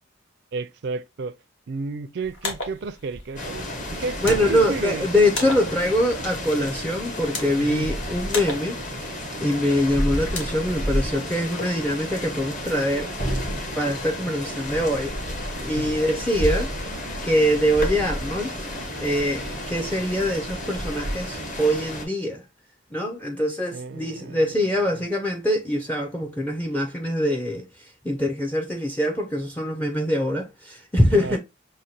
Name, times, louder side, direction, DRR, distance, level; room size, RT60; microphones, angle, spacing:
voice 1, 0.5-1.4 1.7-5.1 7.6-7.9 15.8-16.0 23.7-25.1 31.1-31.4, right 4 dB, 60° right, 0.4 m, -33 dB
sound 1, 2.2-11.2, left 3 dB, 65° left, 1.3 m, -37 dB
sound 2, 3.4-22.1, equal, 40° left, 1.0 m, -31 dB
voice 2, 4.2-8.8 9.4-13.1 13.8-15.1 15.6-16.7 17.2-18.5 19.0-22.4 22.9-27.6 28.0-31.4, equal, 10° left, 0.4 m, -23 dB
6.3 x 2.1 x 2.7 m
head